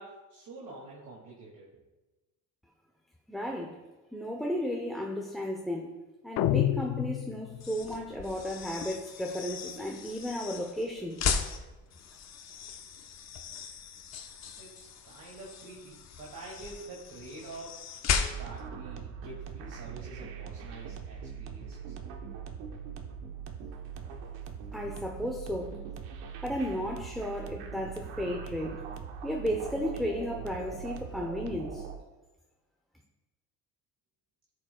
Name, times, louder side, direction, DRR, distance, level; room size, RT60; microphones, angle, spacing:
voice 1, 0.0-1.7 14.6-17.8 18.1-22.0, right 2 dB, 55° right, -5 dB, 2.3 m, -47 dB
voice 2, 3.3-3.8 4.1-5.9 6.2-11.2 24.7-25.7 26.4-28.9 29.2-31.9, equal, ahead, 1 dB, 0.8 m, -34 dB
sound 1, 6.4-7.8, left 13 dB, 70° left, 0.5 m, -28 dB
sound 2, 7.5-18.7, left 6 dB, 45° left, 0.9 m, -37 dB
sound 3, 18.3-32.0, right 7 dB, 85° right, 1.1 m, -41 dB
13.5 x 7.7 x 2.3 m, 1.1 s
cardioid pair, 125°, 37 cm